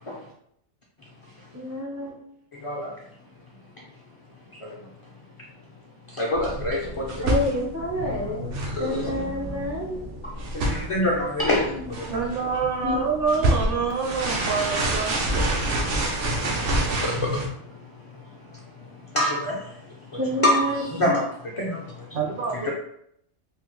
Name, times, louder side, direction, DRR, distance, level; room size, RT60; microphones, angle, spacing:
voice 1, 1.5-2.2 7.2-8.5 8.8-10.0 11.6-11.9 12.8-13.0 13.5-13.6 20.2-21.2, left 1 dB, 25° right, -3 dB, 0.4 m, -29 dB
voice 2, 6.2-7.1 8.8-9.1 10.5-11.7 12.1-12.2 17.0-17.1 19.1-19.6 20.4-21.2 21.6-21.8 22.6-22.7, left 1 dB, 50° left, -3 dB, 0.4 m, -25 dB
sound 1, 6.3-17.5, right 1 dB, 80° right, 1.0 m, -28 dB
voice 3, 12.1-15.3 22.1-22.7, right 5 dB, 55° right, 0 dB, 0.7 m, -27 dB
3.4 x 2.0 x 2.9 m, 0.71 s
omnidirectional pair, 1.2 m